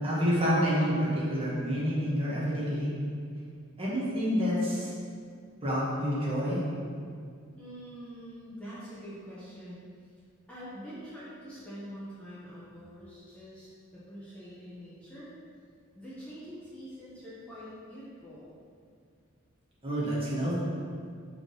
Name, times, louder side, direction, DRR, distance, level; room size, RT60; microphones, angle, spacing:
voice 1, 0.0-2.9 3.8-4.9 5.6-6.6 19.8-20.5, equal, 25° right, -7 dB, 1.5 m, -28 dB
voice 2, 7.5-9.8 10.5-15.3 15.9-18.5, equal, 5° left, -10 dB, 1.0 m, -45 dB
4.9 x 3.7 x 5.4 m, 2.2 s
head